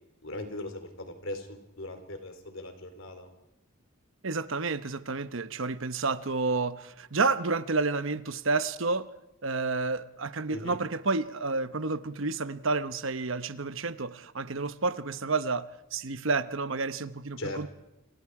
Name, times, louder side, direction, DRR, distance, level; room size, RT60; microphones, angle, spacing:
voice 1, 0.2-3.3 10.5-10.8 17.4-17.7, left 1 dB, 65° left, 3.8 m, -39 dB
voice 2, 4.2-9.1 9.4-17.7, right 3 dB, 65° right, 1.0 m, -30 dB
29.0 x 28.0 x 4.9 m
head